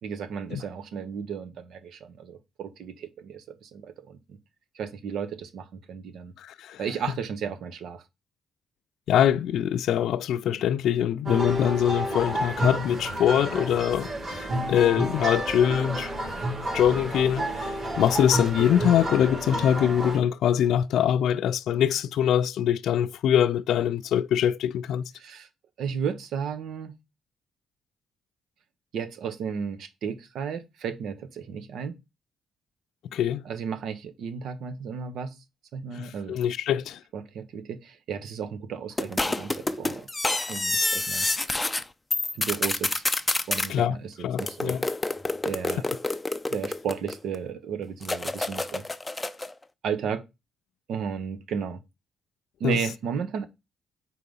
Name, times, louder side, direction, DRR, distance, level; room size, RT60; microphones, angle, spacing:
voice 1, 0.0-4.4 4.7-6.3 6.8-8.0 25.2-25.5 25.8-27.0 28.9-32.0 33.4-35.4 35.7-36.4 37.1-40.1 40.5-41.3 42.3-43.0 43.5-44.8 45.4-45.9 46.5-48.8 49.8-50.2 50.9-51.8 52.6-53.5, right 7 dB, 75° right, 1.0 m, -34 dB
voice 2, 6.5-6.8 9.1-16.1 16.7-17.5 18.0-25.0 33.1-33.4 36.0-37.0 43.7-44.0 44.2-44.8 52.6-52.8, left 10 dB, 75° left, 0.4 m, -23 dB
sound 1, 11.2-20.2, right 1 dB, 50° right, 2.9 m, -30 dB
sound 2, 39.0-41.8 42.1-43.7 44.4-47.4 48.0-49.5, left 2 dB, 15° left, 0.5 m, -28 dB
4.6 x 3.9 x 5.5 m
cardioid pair, 90°, 0 cm